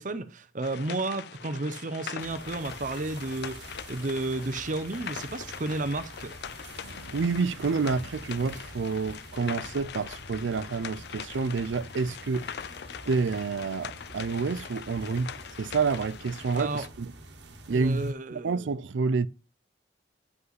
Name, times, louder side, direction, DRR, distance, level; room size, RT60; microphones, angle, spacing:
voice 1, 0.0-6.4 16.6-16.9 17.7-18.7, right 2 dB, 45° right, 0.6 m, -32 dB
sound 1, 0.6-16.9, left 8 dB, 60° left, 0.4 m, -42 dB
sound 2, 2.2-18.1, right 2 dB, 70° right, 1.4 m, -47 dB
voice 2, 6.8-12.5 13.1-17.1 17.7-19.3, right 4 dB, 85° right, 0.5 m, -29 dB
9.5 x 5.4 x 4.0 m
head